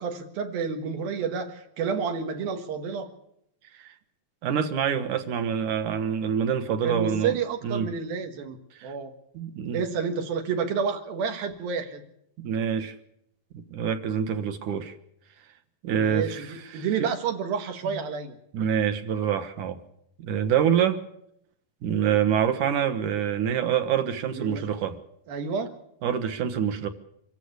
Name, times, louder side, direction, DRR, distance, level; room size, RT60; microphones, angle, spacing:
voice 1, 0.0-3.1 6.8-9.1 9.7-12.0 16.0-18.4 24.3-24.6 25.3-25.7, right 6 dB, 85° right, 6 dB, 3.6 m, -30 dB
voice 2, 4.4-7.4 7.6-7.9 8.8-8.9 9.3-9.8 12.4-13.0 13.5-14.9 15.8-17.1 17.9-18.0 18.5-19.8 20.2-21.0 21.8-25.0 26.0-26.9, right 8 dB, 65° right, 10 dB, 2.5 m, -26 dB
25.0 x 15.0 x 8.2 m, 0.74 s
omnidirectional pair, 4.1 m